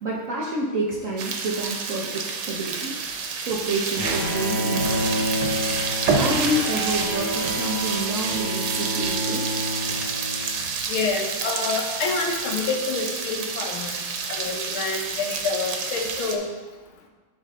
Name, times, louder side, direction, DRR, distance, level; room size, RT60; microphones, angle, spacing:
voice 1, 0.0-2.9 3.4-5.2 6.2-9.4, right 1 dB, 60° right, -3 dB, 0.9 m, -28 dB
sound 1, 1.2-16.3, right 5 dB, 85° right, 1.7 m, -28 dB
Bowed string instrument, 4.0-10.7, equal, 25° left, 0.5 m, -29 dB
voice 2, 10.9-14.0 14.3-16.5, left 4 dB, 75° left, 2 dB, 1.7 m, -27 dB
10.0 x 4.4 x 3.7 m, 1.3 s
omnidirectional pair, 2.3 m